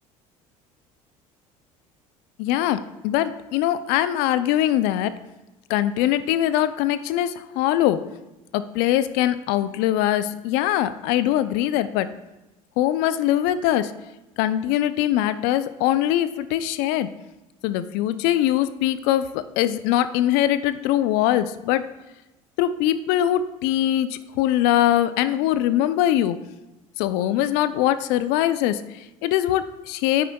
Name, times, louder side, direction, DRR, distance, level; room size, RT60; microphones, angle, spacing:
voice 1, 2.4-5.1 5.7-8.0 8.5-12.1 12.8-13.9 14.4-17.1 17.6-21.8 22.6-26.4 27.0-30.3, left 12 dB, 65° left, 13 dB, 0.5 m, -22 dB
9.4 x 9.2 x 2.3 m, 1.0 s
hypercardioid pair, 70°, 18 cm